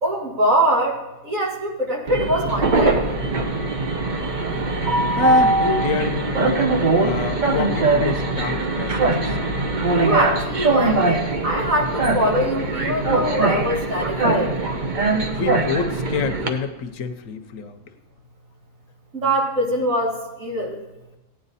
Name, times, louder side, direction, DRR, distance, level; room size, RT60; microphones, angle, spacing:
voice 1, 0.0-1.0 1.2-3.0 10.0-14.5 19.1-20.8, right 1 dB, 75° right, 0 dB, 2.2 m, -22 dB
Train, 2.1-16.5, right 2 dB, 40° right, 1.0 m, -21 dB
voice 2, 5.1-6.6 7.0-9.2 15.3-17.8, left 5 dB, 75° left, 9 dB, 1.2 m, -27 dB
15.5 x 9.8 x 4.1 m, 1.0 s
omnidirectional pair, 1.4 m